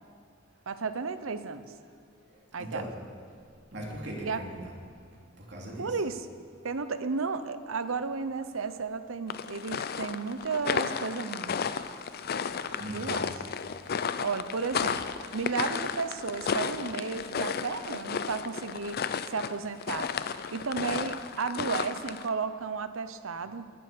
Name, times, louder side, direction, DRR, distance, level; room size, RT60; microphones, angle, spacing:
voice 1, 0.7-1.7 2.5-2.8 4.2-4.4 5.8-6.2 6.6-11.6 12.9-13.3 14.2-15.0 15.3-20.1 20.5-23.7, right 4 dB, 85° right, 11 dB, 0.8 m, -33 dB
voice 2, 2.6-2.9 3.7-4.7 5.4-6.0 8.6-8.7 12.8-13.2 14.9-15.0, right 1 dB, 55° right, -2 dB, 2.9 m, -39 dB
sound 1, 9.3-22.3, left 6 dB, 50° left, 0.5 m, -33 dB
20.0 x 7.9 x 6.8 m, 2.2 s
head